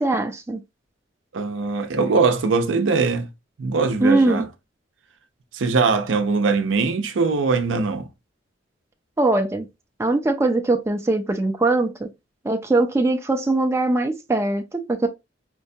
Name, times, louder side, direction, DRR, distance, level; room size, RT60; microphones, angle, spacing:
voice 1, 0.0-0.6 4.0-4.5 9.2-9.7 10.0-12.1 12.4-15.1, right 2 dB, 15° right, 0.3 m, -21 dB
voice 2, 1.3-3.3 3.6-4.4 5.5-8.1, right 4 dB, 80° right, 0.5 m, -21 dB
4.5 x 2.2 x 2.6 m
head